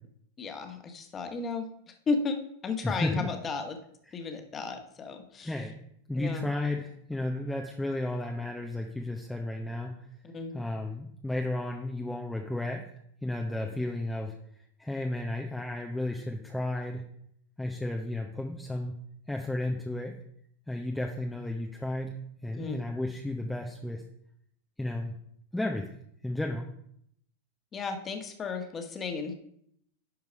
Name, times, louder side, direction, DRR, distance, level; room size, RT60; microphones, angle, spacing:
voice 1, 0.4-2.4 2.6-3.8 4.1-5.5 6.2-6.5 10.2-10.5 22.5-22.8 27.7-29.3, left 4 dB, 25° left, 6 dB, 1.4 m, -34 dB
voice 2, 2.8-3.3 4.1-4.2 5.4-5.7 6.1-10.1 10.5-12.8 13.2-14.3 14.8-17.0 17.6-19.0 19.3-20.1 20.7-22.1 22.4-24.0 24.8-25.1 25.5-25.9 26.2-26.7, left 1 dB, 5° left, 1 dB, 0.8 m, -33 dB
11.0 x 4.7 x 5.2 m, 0.69 s
figure-of-eight pair, 90°, 0 cm